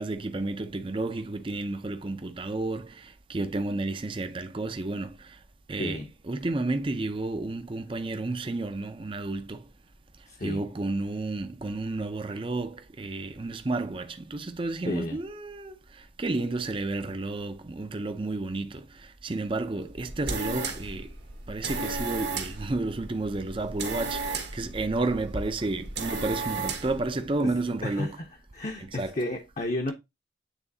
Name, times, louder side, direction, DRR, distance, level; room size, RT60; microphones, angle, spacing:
voice 1, 0.0-5.4 5.7-9.7 10.2-21.1 21.5-28.2 28.8-29.3, right 2 dB, 30° right, 0.5 m, -31 dB
voice 2, 5.8-6.1 10.3-10.6 14.8-15.2 27.4-27.5 27.8-28.3 28.5-29.9, left 1 dB, 40° left, 0.8 m, -32 dB
sound 1, 19.9-27.0, right 3 dB, 70° right, 1.4 m, -34 dB
9.0 x 3.8 x 2.7 m
head